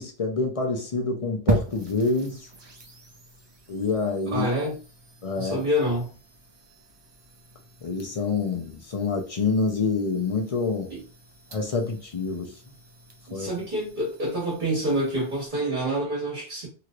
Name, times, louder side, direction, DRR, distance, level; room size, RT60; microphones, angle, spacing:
voice 1, 0.0-2.5 3.7-4.5 5.2-5.6 7.8-10.9 11.5-12.5 13.3-13.5, left 4 dB, 40° left, 0.5 m, -27 dB
sound 1, 1.5-15.5, right 3 dB, 35° right, 0.4 m, -38 dB
voice 2, 4.3-4.7 5.4-6.1 10.9-11.0 13.3-16.7, equal, 50° right, 1.3 m, -27 dB
3.0 x 2.9 x 2.4 m
omnidirectional pair, 1.1 m